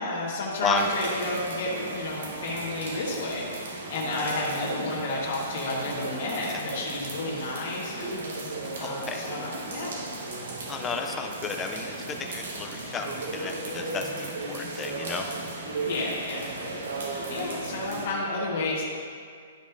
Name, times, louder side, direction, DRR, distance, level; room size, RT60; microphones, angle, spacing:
voice 1, 0.0-3.5 3.9-8.2 8.8-10.0 15.8-16.5 17.3-18.8, left 2 dB, 35° left, -7 dB, 1.2 m, -31 dB
sound 1, 0.8-18.1, right 2 dB, 65° right, 1.3 m, -36 dB
voice 2, 8.8-9.2 10.7-11.9 12.2-15.3, left 5 dB, 10° left, 4 dB, 0.4 m, -32 dB
11.5 x 5.1 x 2.6 m, 2.2 s
hypercardioid pair, 180°, 0 cm